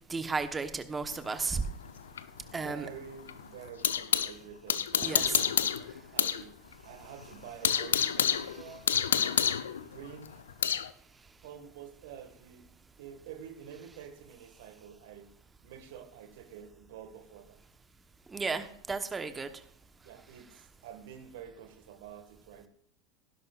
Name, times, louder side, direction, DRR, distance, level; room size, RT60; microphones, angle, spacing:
voice 1, 0.1-1.6 2.5-2.9 5.0-5.4 18.3-19.5, right 4 dB, 20° right, 9 dB, 1.1 m, -33 dB
sound 1, 1.1-4.3 4.7-6.4 6.7-6.8 7.2-10.9, left 8 dB, 80° left, 0.7 m, -29 dB
voice 2, 2.4-5.6 6.1-6.6 6.8-9.5 9.8-10.4 11.4-12.7 13.0-15.3 15.6-17.6 19.3-19.5 20.0-22.7, right 8 dB, 65° right, 6 dB, 1.7 m, -48 dB
17.5 x 11.0 x 2.5 m, 0.67 s
hypercardioid pair, 85°, 0 cm